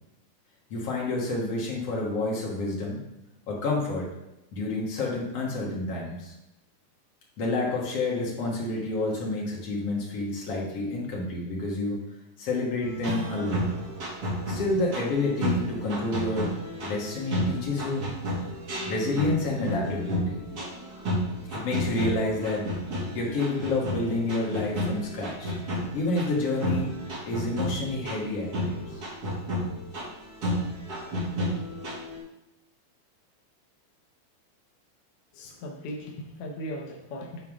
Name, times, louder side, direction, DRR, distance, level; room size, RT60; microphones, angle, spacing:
voice 1, 0.7-3.0 3.5-4.1 4.5-6.3 7.4-12.0 12.4-13.6 14.5-16.5 16.8-18.1 18.9-20.5 21.5-22.7 23.2-25.5 25.9-26.9 27.3-28.8, left 2 dB, 55° left, -3 dB, 2.3 m, -29 dB
sound 1, 12.8-32.2, equal, 45° right, 3.0 m, -32 dB
Strum, 13.0-18.0, right 2 dB, 75° right, 2.2 m, -44 dB
voice 2, 35.3-37.4, equal, 75° left, 0 dB, 1.3 m, -38 dB
9.0 x 4.5 x 3.6 m, 0.94 s
omnidirectional pair, 3.7 m